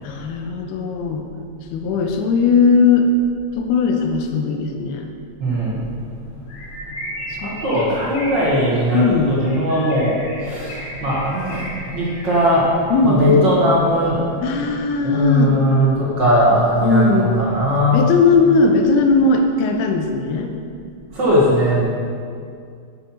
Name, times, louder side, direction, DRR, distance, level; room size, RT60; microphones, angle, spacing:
voice 1, 0.0-1.3 1.7-3.1 3.5-5.1 7.3-7.5 8.9-9.4 12.9-13.4 14.4-15.6 16.8-17.3 17.9-20.5, left 4 dB, 90° left, 4 dB, 2.6 m, -18 dB
voice 2, 5.4-5.8 7.4-11.6 11.9-12.6 13.0-14.2 15.0-18.1 21.1-21.8, equal, 45° right, -6 dB, 1.6 m, -18 dB
Bird, 6.5-12.8, equal, 55° left, 2.3 m, -35 dB
9.8 x 8.1 x 4.3 m, 2.3 s
omnidirectional pair, 4.5 m